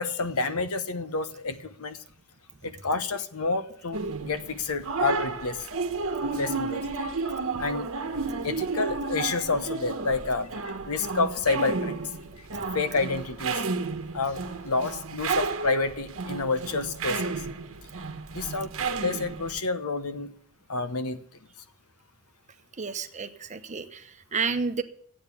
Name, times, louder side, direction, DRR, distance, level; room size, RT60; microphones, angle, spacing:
voice 1, 0.0-2.0 2.6-5.7 6.2-7.1 7.6-7.9 8.4-10.6 10.8-12.0 12.7-13.6 14.1-17.3 18.3-18.7 19.0-20.3 20.7-21.2, left 3 dB, 75° left, 11 dB, 1.0 m, -29 dB
sound 1, 3.9-19.6, right 4 dB, 65° right, 1.2 m, -32 dB
voice 2, 22.8-24.8, right 5 dB, 35° right, 8 dB, 0.9 m, -31 dB
13.0 x 8.8 x 7.1 m, 0.62 s
head